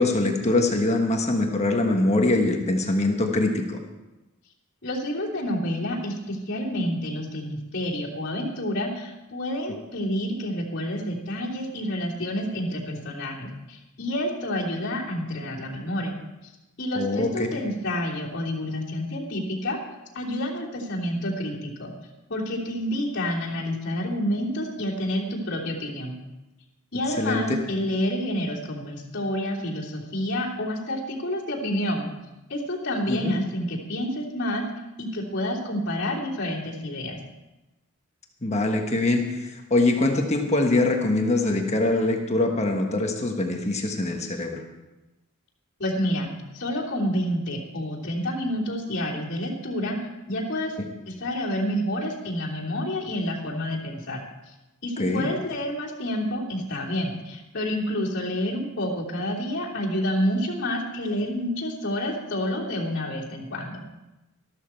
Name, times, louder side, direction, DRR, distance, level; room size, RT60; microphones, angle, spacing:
voice 1, 0.0-3.8 16.9-17.5 27.2-27.4 33.1-33.3 38.4-44.6 55.0-55.3, left 2 dB, 30° left, 3 dB, 1.4 m, -23 dB
voice 2, 4.8-16.2 16.8-19.8 20.1-21.9 22.3-26.2 26.9-32.1 32.5-34.6 35.0-37.2 45.8-50.0 50.3-50.7 51.1-54.2 54.8-63.8, equal, 50° left, -5 dB, 3.2 m, -29 dB
13.5 x 12.5 x 4.5 m, 1.0 s
head